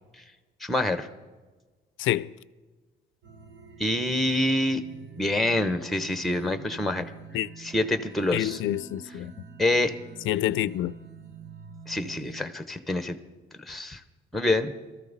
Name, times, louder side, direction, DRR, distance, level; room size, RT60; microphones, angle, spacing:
voice 1, 0.6-1.1 3.8-4.8 5.2-7.1 7.6-8.6 9.6-9.9 11.9-13.2 13.7-14.0 14.3-14.7, left 1 dB, ahead, 0.9 m, -26 dB
voice 2, 2.0-2.3 7.3-7.5 8.3-9.3 10.3-10.9, left 14 dB, 80° left, 0.4 m, -27 dB
sound 1, 3.2-12.5, right 6 dB, 75° right, 1.2 m, -46 dB
19.0 x 13.5 x 4.0 m
cardioid pair, 90°, 20 cm